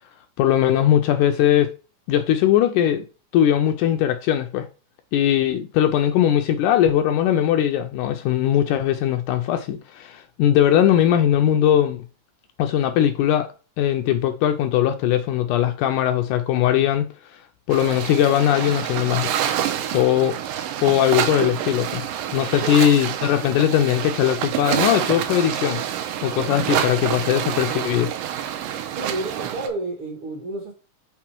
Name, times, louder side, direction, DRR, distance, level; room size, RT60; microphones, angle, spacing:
voice 1, 0.4-1.8 2.1-3.1 3.3-4.7 5.1-12.0 12.6-17.4 17.7-19.4 19.9-20.4 20.8-22.0 22.3-25.8 26.2-28.1, left 11 dB, 80° left, 1.9 m, -20 dB
sound 1, 17.7-29.7, right 10 dB, 80° right, 2.3 m, -27 dB
voice 2, 28.9-30.7, right 2 dB, 55° right, 1.7 m, -30 dB
5.9 x 3.9 x 4.5 m
omnidirectional pair, 3.9 m